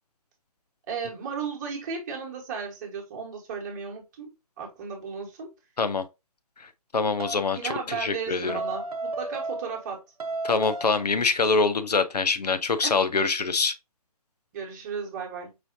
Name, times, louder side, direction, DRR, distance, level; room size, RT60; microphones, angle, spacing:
voice 1, 0.9-4.3 4.6-5.5 7.5-10.0 12.8-12.9 14.5-15.5, right 6 dB, 25° right, 1.2 m, -35 dB
voice 2, 6.9-8.6 10.4-13.7, left 4 dB, 90° left, 0.6 m, -25 dB
sound 1, 7.2-7.5 8.5-9.9 10.2-11.1, right 2 dB, 75° right, 0.7 m, -33 dB
4.9 x 2.6 x 2.6 m
figure-of-eight pair, 150°, 20 cm